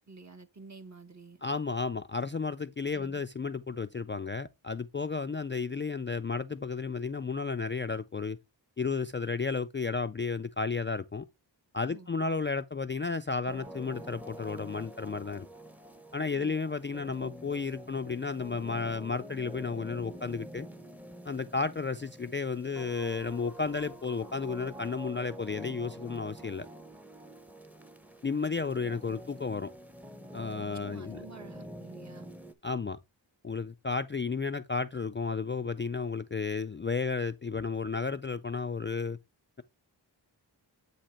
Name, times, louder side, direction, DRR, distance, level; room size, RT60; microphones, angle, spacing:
voice 1, 0.1-1.4 2.9-3.2 11.8-12.1 16.3-16.6 30.6-32.3, right 3 dB, 35° right, 0.9 m, -50 dB
voice 2, 1.4-8.4 8.8-11.3 11.7-15.5 16.1-20.7 21.3-26.7 28.2-29.7 30.3-31.2 32.6-33.0 33.4-39.2, left 4 dB, 30° left, 0.3 m, -33 dB
sound 1, 13.5-32.5, equal, 5° right, 0.7 m, -47 dB
8.6 x 2.9 x 4.2 m
wide cardioid pair, 85°, 46 cm